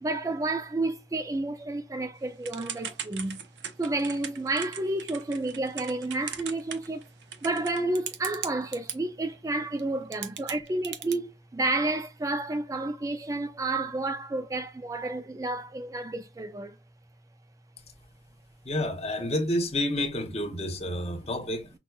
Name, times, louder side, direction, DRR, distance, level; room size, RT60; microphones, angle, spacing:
voice 1, 0.0-3.4 3.8-7.1 7.4-16.8, right 2 dB, 20° right, 0.3 m, -30 dB
Typing / Telephone, 2.4-9.0 9.8-9.9 10.1-11.1, right 8 dB, 85° right, 0.7 m, -38 dB
voice 2, 18.6-21.7, left 1 dB, 35° left, 0.9 m, -29 dB
5.9 x 2.3 x 2.3 m
head